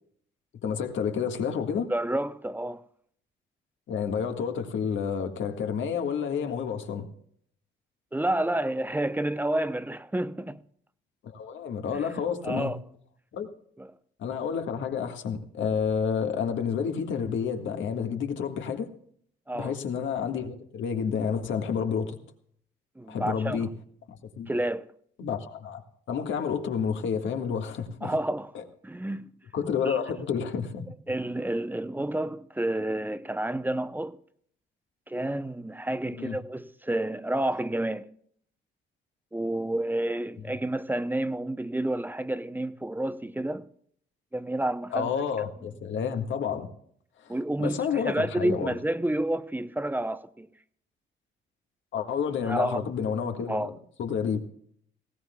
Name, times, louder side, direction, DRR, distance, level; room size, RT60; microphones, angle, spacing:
voice 1, 0.6-1.9 3.9-7.1 11.2-12.7 13.3-13.5 14.2-18.9 19.5-22.2 23.1-23.7 24.4-24.5 25.2-25.8 26.1-28.1 28.5-28.6 29.5-30.9 36.1-36.4 44.9-46.7 47.2-47.3 47.6-48.7 51.9-53.7 54.0-54.5, left 7 dB, 70° left, 1.7 m, -30 dB
voice 2, 1.9-2.8 8.1-10.6 11.9-12.1 12.4-12.8 13.8-13.9 19.5-19.8 23.0-23.7 24.5-24.9 28.0-28.5 28.8-29.3 29.8-30.0 31.1-34.2 35.1-38.0 39.3-43.7 44.3-45.2 47.3-50.5 52.4-52.8 53.5-53.7, right 1 dB, 10° right, 0.7 m, -30 dB
18.5 x 16.5 x 2.3 m
cardioid pair, 90°, 20 cm